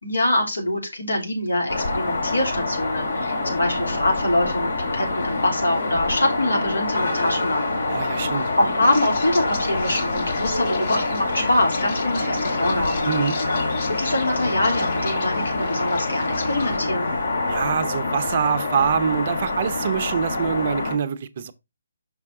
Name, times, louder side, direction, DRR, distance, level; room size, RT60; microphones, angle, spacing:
voice 1, 0.0-7.9 8.6-13.1 13.9-17.1, left 1 dB, 85° left, 3.0 m, -24 dB
sound 1, 1.7-21.0, left 2 dB, 70° left, 2.5 m, -26 dB
voice 2, 7.9-8.5 13.1-13.4 17.5-21.5, right 7 dB, 40° right, 0.7 m, -24 dB
sound 2, 8.8-16.8, left 4 dB, 45° left, 1.6 m, -37 dB
5.9 x 5.5 x 3.6 m
figure-of-eight pair, 150°, 0 cm